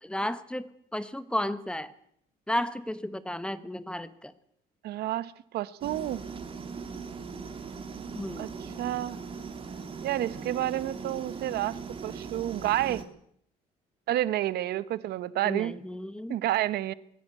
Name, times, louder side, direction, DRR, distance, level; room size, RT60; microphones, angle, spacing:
voice 1, 0.0-1.9 2.5-4.3 8.1-8.5 15.4-16.4, left 1 dB, 5° left, 1.3 m, -33 dB
voice 2, 4.8-6.3 8.4-8.5 8.8-9.2 10.0-13.0 14.1-15.7 16.3-16.9, right 14 dB, 75° right, 1.0 m, -30 dB
sound 1, 5.8-13.0, right 5 dB, 35° right, 3.1 m, -40 dB
21.0 x 16.5 x 8.3 m
cardioid pair, 110°, 17 cm